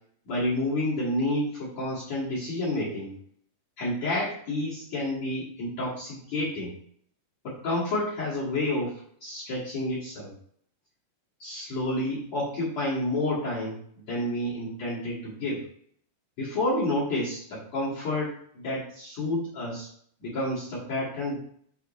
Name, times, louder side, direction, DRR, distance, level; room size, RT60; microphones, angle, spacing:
voice 1, 0.3-3.1 3.8-6.7 7.4-8.9 9.2-10.3 11.4-13.8 14.1-15.6 16.4-19.9 20.2-21.4, left 1 dB, 50° left, -7 dB, 2.6 m, -29 dB
7.3 x 4.1 x 4.2 m, 0.64 s
omnidirectional pair, 4.9 m